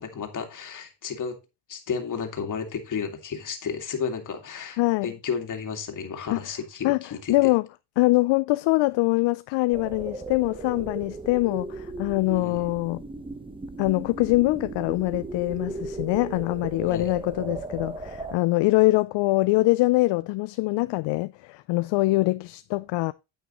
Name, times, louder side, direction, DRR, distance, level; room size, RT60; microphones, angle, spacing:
voice 1, 0.0-1.4 1.7-7.4 12.3-12.6 16.8-17.1, left 6 dB, 35° left, 2.3 m, -32 dB
voice 2, 4.8-5.1 6.3-6.4 6.8-7.0 7.3-7.7 8.0-13.0 13.8-23.1, left 21 dB, 60° left, 0.5 m, -23 dB
sound 1, 9.7-18.4, right 3 dB, 10° right, 0.9 m, -36 dB
9.4 x 8.7 x 3.0 m
cardioid pair, 130°, 50 cm